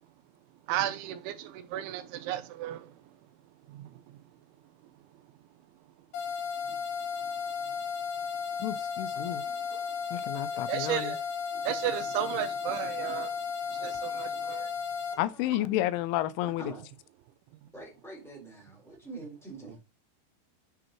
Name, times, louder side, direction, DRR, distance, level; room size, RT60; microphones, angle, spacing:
voice 1, 0.7-2.9 3.7-3.9 10.7-11.2 11.6-13.3 13.7-14.7, right 12 dB, 85° right, 2.9 m, -33 dB
sound 1, 6.1-15.1, left 6 dB, 75° left, 3.6 m, -34 dB
voice 2, 8.6-9.5 10.1-11.2 15.2-16.7, left 14 dB, 90° left, 3.0 m, -31 dB
voice 3, 15.1-15.7 16.6-16.8 17.7-19.8, right 3 dB, ahead, 3.2 m, -45 dB
8.9 x 6.2 x 3.0 m
omnidirectional pair, 5.4 m